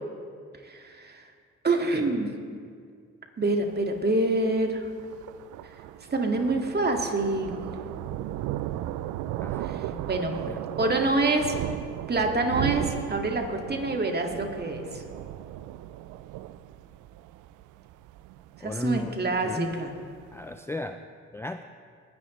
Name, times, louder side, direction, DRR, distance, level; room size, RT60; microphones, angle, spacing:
voice 1, 0.6-1.2 1.6-2.3 3.4-4.9 6.0-7.8 9.6-10.3 10.8-11.5 12.1-15.0 18.6-19.9, right 2 dB, 30° right, 3 dB, 2.1 m, -26 dB
Thunder, 3.6-20.5, right 13 dB, 80° right, 0.5 m, -36 dB
voice 2, 9.4-10.1 10.5-10.6 18.6-19.1 19.4-19.8 20.3-21.0 21.3-21.6, left 2 dB, 10° left, 8 dB, 0.4 m, -34 dB
21.0 x 10.5 x 3.2 m, 2.1 s
supercardioid pair, 65°, 30 cm